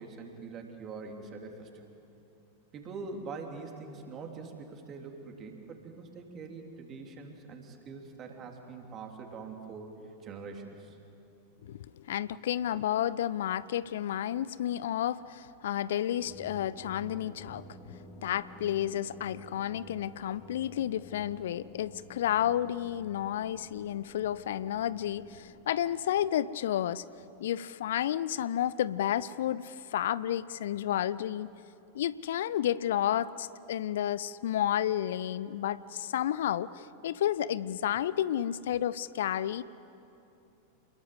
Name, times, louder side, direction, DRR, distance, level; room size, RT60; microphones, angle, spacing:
voice 1, 0.0-1.8 2.7-10.0 10.2-11.0, right 4 dB, 30° right, 2 dB, 3.6 m, -43 dB
voice 2, 11.7-17.6 18.2-27.0 27.4-31.5 31.9-39.6, left 11 dB, 60° left, 18 dB, 0.5 m, -31 dB
sound 1, 16.2-25.6, left 1 dB, 10° left, 3.4 m, -51 dB
28.5 x 21.0 x 8.0 m, 2.7 s
figure-of-eight pair, 90°, 0 cm